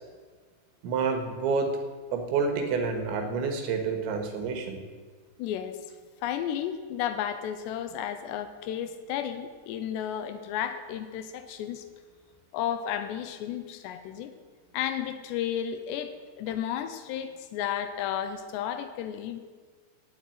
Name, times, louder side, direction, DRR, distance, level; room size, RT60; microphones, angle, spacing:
voice 1, 0.8-1.7 2.1-4.8, right 5 dB, 80° right, 6 dB, 3.9 m, -28 dB
voice 2, 5.4-5.8 6.2-11.8 12.5-14.3 14.7-19.4, left 10 dB, 80° left, 9 dB, 2.9 m, -33 dB
17.0 x 6.6 x 9.2 m, 1.5 s
omnidirectional pair, 5.3 m